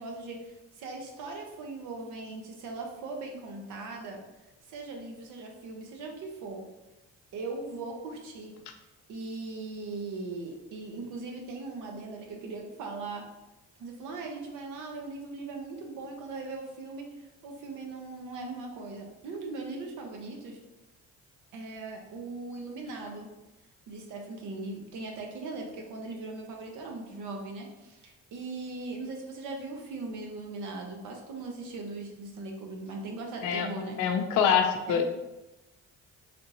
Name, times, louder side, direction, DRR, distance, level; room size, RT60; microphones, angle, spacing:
voice 1, 0.0-4.2 4.7-6.7 7.3-8.5 9.1-13.3 13.8-20.6 21.5-23.3 23.9-34.0 34.9-35.0, right 3 dB, 90° right, 2 dB, 0.7 m, -39 dB
voice 2, 33.4-35.0, left 7 dB, 85° left, 5 dB, 0.5 m, -25 dB
3.4 x 2.6 x 2.8 m, 1.0 s
cardioid pair, 90°, 30 cm